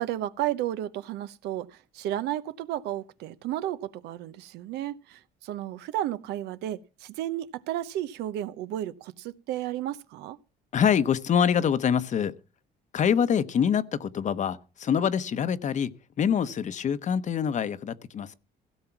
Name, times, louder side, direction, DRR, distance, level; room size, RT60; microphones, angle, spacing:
voice 1, 0.0-10.4, right 13 dB, 85° right, 0.9 m, -33 dB
voice 2, 10.7-12.3 12.9-18.3, left 8 dB, 45° left, 1.0 m, -25 dB
16.5 x 7.3 x 5.9 m
cardioid pair, 110°, 17 cm